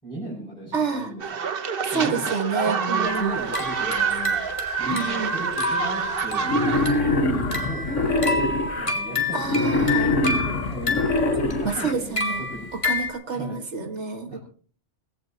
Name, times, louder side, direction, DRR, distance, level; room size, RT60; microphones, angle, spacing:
voice 1, 0.0-1.5 1.9-2.3 2.7-6.5 7.3-12.2 12.5-12.7 13.3-13.6 14.3-14.4, right 1 dB, 5° left, -6 dB, 6.3 m, -37 dB
voice 2, 0.7-1.1 1.8-3.3 4.9-5.3 9.3-10.1 11.6-12.4 12.8-14.4, right 5 dB, 70° right, 7 dB, 2.1 m, -28 dB
sound 1, 1.2-6.9, right 6 dB, 50° right, 1.2 m, -27 dB
sound 2, 3.0-13.1, left 2 dB, 25° left, 2.3 m, -30 dB
Wild animals, 6.4-8.9 9.4-11.9, left 2 dB, 90° left, 1.9 m, -23 dB
18.5 x 16.5 x 3.0 m, 0.42 s
omnidirectional pair, 1.2 m